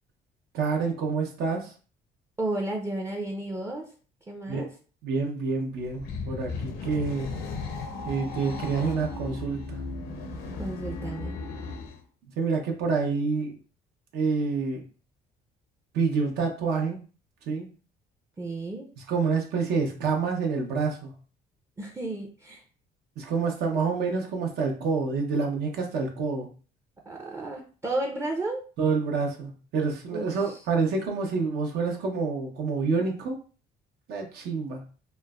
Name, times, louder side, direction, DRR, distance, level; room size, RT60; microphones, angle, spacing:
voice 1, 0.5-1.7 4.5-4.7 5.0-7.3 8.1-9.8 12.4-13.5 14.1-14.8 15.9-17.0 17.5-17.7 19.1-21.1 23.2-26.5 28.8-33.4 34.1-34.8, right 4 dB, 75° right, 2 dB, 0.7 m, -27 dB
voice 2, 2.4-3.9 4.3-4.7 10.6-11.4 18.4-18.9 21.8-22.6 27.1-28.6 30.1-30.6, right 2 dB, 15° right, 0 dB, 0.4 m, -33 dB
sound 1, 5.7-12.0, left 3 dB, 75° left, 0.6 m, -36 dB
3.0 x 2.0 x 2.3 m, 0.38 s
cardioid pair, 110°, 17 cm